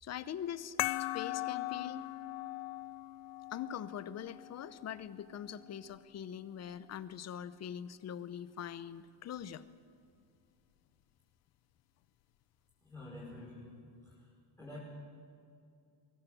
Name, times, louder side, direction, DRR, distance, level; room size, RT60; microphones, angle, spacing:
voice 1, 0.0-2.1 3.5-9.6, left 9 dB, 35° left, 15 dB, 0.8 m, -43 dB
sound 1, 0.8-5.9, left 18 dB, 65° left, 0.6 m, -40 dB
voice 2, 12.8-13.8 14.1-14.2 14.6-14.8, left 2 dB, 5° left, -7 dB, 5.3 m, -48 dB
22.5 x 18.0 x 8.0 m, 2.4 s
cardioid pair, 145°, 46 cm